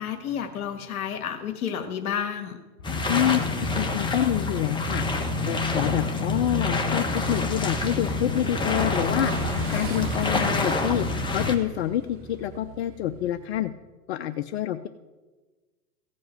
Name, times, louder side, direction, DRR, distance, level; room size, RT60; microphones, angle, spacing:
voice 1, 0.0-2.6, left 8 dB, 65° left, 6 dB, 1.6 m, -31 dB
sound 1, 2.8-11.6, left 3 dB, 10° left, 1.2 m, -27 dB
voice 2, 3.1-5.0 5.5-9.3 9.7-11.1 11.3-12.0 12.3-13.7 14.1-14.9, left 12 dB, 45° left, 11 dB, 0.6 m, -27 dB
Motorcycle / Engine, 6.6-13.6, right 5 dB, 25° right, 1.3 m, -39 dB
sound 2, 8.6-12.5, right 3 dB, 70° right, 1.4 m, -41 dB
15.5 x 5.4 x 9.1 m, 1.3 s
hypercardioid pair, 120°, 46 cm